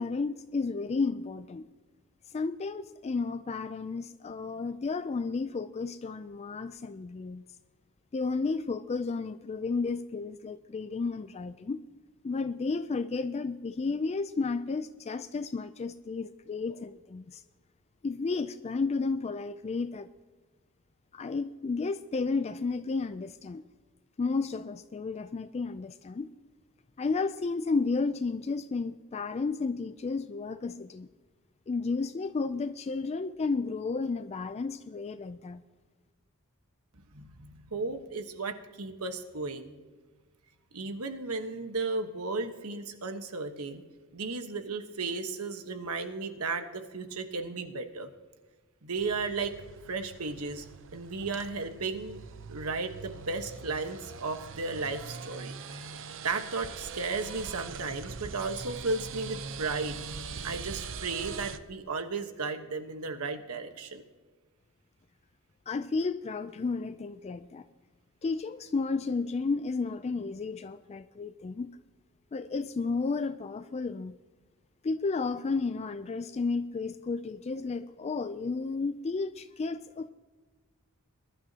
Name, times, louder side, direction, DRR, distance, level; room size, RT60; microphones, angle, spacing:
voice 1, 0.0-1.7 2.3-7.4 8.1-11.8 12.2-17.4 18.0-20.1 21.1-23.6 24.2-26.3 27.0-31.1 31.7-35.6 65.7-67.7 68.2-71.7 72.3-74.1 74.8-80.1, left 4 dB, 30° left, 11 dB, 0.3 m, -32 dB
voice 2, 37.1-39.8 40.7-43.8 44.1-48.1 48.8-49.5 49.9-50.7 50.9-52.2 52.5-55.5 56.2-60.0 60.4-64.0, right 3 dB, 90° right, 7 dB, 1.2 m, -34 dB
sound 1, 49.0-61.6, right 5 dB, 60° right, 0.7 m, -42 dB
22.0 x 11.5 x 2.8 m, 1.4 s
head